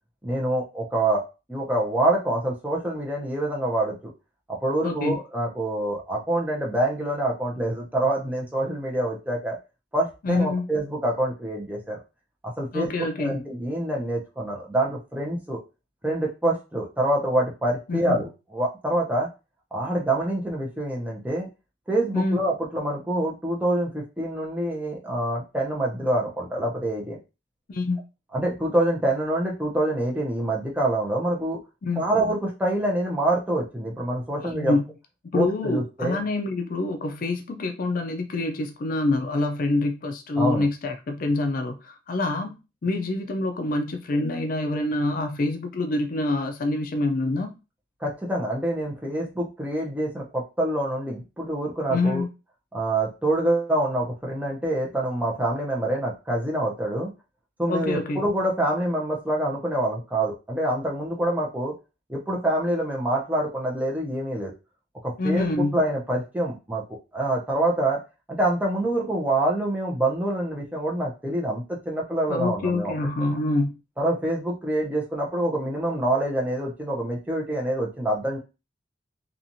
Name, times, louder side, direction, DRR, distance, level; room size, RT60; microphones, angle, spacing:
voice 1, 0.2-1.2 1.5-4.0 4.5-9.6 9.9-12.0 12.4-15.6 16.0-19.3 19.7-21.5 21.9-27.2 28.3-31.6 32.0-34.7 35.3-36.2 40.4-40.7 48.0-52.2 52.7-57.1 57.6-61.7 62.1-64.5 65.0-66.8 67.1-68.0 68.3-72.9 74.0-78.4, right 1 dB, 10° right, 0.6 m, -26 dB
voice 2, 4.8-5.2 10.2-10.7 12.7-13.5 17.9-18.2 22.1-22.4 27.7-28.0 31.8-32.1 34.4-34.9 35.2-47.5 51.9-52.3 57.7-58.2 65.2-65.8 72.3-73.8, left 2 dB, 50° left, 0.4 m, -26 dB
2.8 x 2.4 x 2.6 m
head